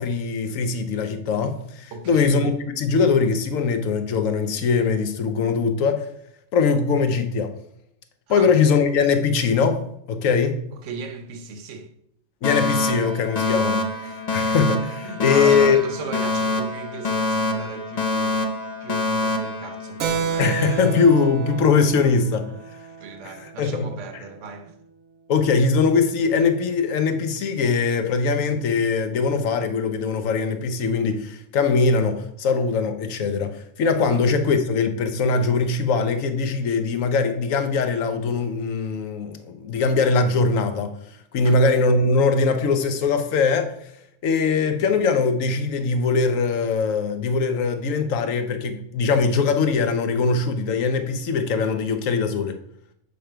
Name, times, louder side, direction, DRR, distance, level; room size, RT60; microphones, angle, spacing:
voice 1, 0.0-6.1 6.5-7.5 8.3-9.8 10.1-10.6 12.4-15.8 20.4-22.4 23.6-23.9 25.3-40.9 41.3-43.7 44.2-52.6, left 4 dB, 80° left, 1.2 m, -21 dB
voice 2, 1.9-2.3 8.3-8.6 10.7-11.9 15.0-20.6 22.4-22.6 23.0-24.8 34.1-34.2 41.4-41.6, right 4 dB, 65° right, 1.1 m, -36 dB
Alarm, 12.4-20.5, left 2 dB, 40° left, 0.6 m, -25 dB
Keyboard (musical), 20.0-24.1, right 7 dB, 85° right, 1.2 m, -30 dB
6.8 x 5.1 x 4.5 m
omnidirectional pair, 1.4 m